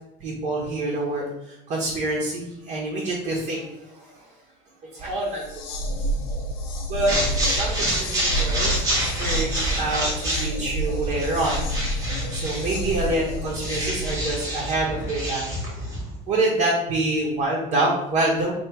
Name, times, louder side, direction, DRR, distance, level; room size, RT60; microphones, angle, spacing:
voice 1, 0.2-4.2 4.9-5.9 6.9-7.2 7.4-8.8 9.1-11.6 12.3-15.8 16.3-18.5, right 2 dB, 40° right, -3 dB, 1.1 m, -26 dB
sound 1, 5.3-14.3, equal, 80° left, 1.1 m, -29 dB
sound 2, 7.1-16.1, right 1 dB, 20° right, 1.2 m, -28 dB
3.0 x 3.0 x 4.5 m, 0.88 s
cardioid pair, 145°, 17 cm